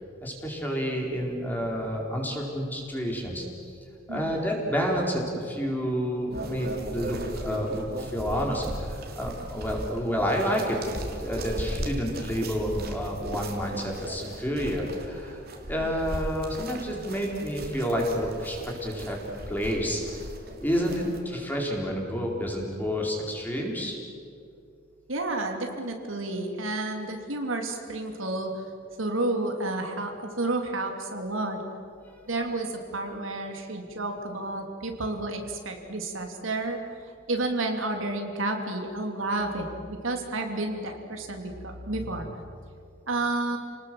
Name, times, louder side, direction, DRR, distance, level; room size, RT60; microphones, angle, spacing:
voice 1, 0.2-3.4 4.1-15.4 15.6-19.2 19.5-20.2 20.6-24.0, equal, 10° left, -1 dB, 4.4 m, -29 dB
sound 1, 6.3-21.2, right 1 dB, 50° right, 3.2 m, -37 dB
voice 2, 25.1-28.5 29.0-31.6 32.3-36.8 37.3-42.3 43.1-43.6, right 2 dB, 80° right, 3 dB, 3.0 m, -31 dB
29.5 x 19.5 x 7.8 m, 2.4 s
head